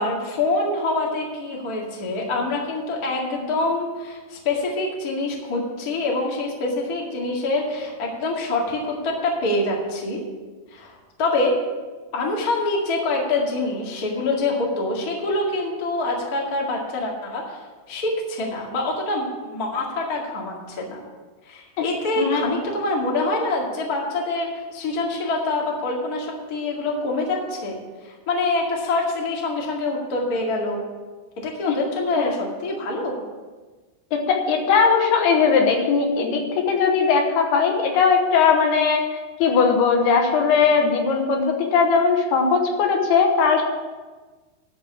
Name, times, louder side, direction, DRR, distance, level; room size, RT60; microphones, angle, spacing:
voice 1, 0.0-10.2 10.7-11.6 12.1-17.6 17.9-21.0 21.5-27.8 28.0-30.8 31.4-33.2, left 2 dB, 35° left, -2 dB, 1.5 m, -25 dB
voice 2, 22.2-22.5 34.1-39.0 39.4-43.6, left 5 dB, 75° left, 2 dB, 3.1 m, -19 dB
12.0 x 5.5 x 8.5 m, 1.3 s
omnidirectional pair, 4.8 m